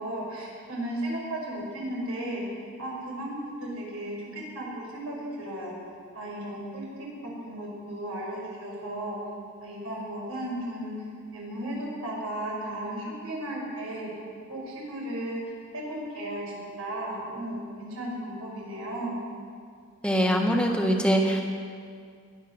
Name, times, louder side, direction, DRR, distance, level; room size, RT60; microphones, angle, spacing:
voice 1, 0.0-5.7 6.1-7.1 7.4-9.2 9.6-10.9 11.3-14.2 14.5-15.4 15.7-19.3, right 1 dB, 85° right, -3 dB, 5.2 m, -35 dB
voice 2, 20.0-21.4, equal, 5° left, 1 dB, 1.5 m, -23 dB
22.0 x 9.4 x 6.3 m, 2.2 s
head